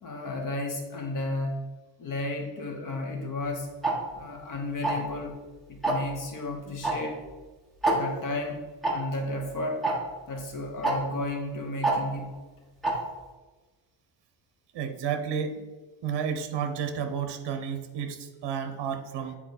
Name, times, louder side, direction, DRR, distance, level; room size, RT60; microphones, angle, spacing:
voice 1, 0.0-1.7 2.0-3.7 4.1-5.4 5.7-7.2 7.9-9.9 10.3-12.3, left 2 dB, 45° left, 3 dB, 1.2 m, -33 dB
Tick-tock, 3.8-3.9 4.8-5.1 5.8-6.1 6.8-6.9 7.2-7.3 7.8-8.0 8.8-8.9 9.8-9.9 10.8-10.9 11.8-12.0 12.8-12.9, right 2 dB, ahead, 1.0 m, -24 dB
voice 2, 14.7-15.6 16.0-19.4, right 7 dB, 65° right, 8 dB, 1.0 m, -31 dB
8.8 x 4.5 x 4.1 m, 1.2 s
cardioid pair, 180°, 44 cm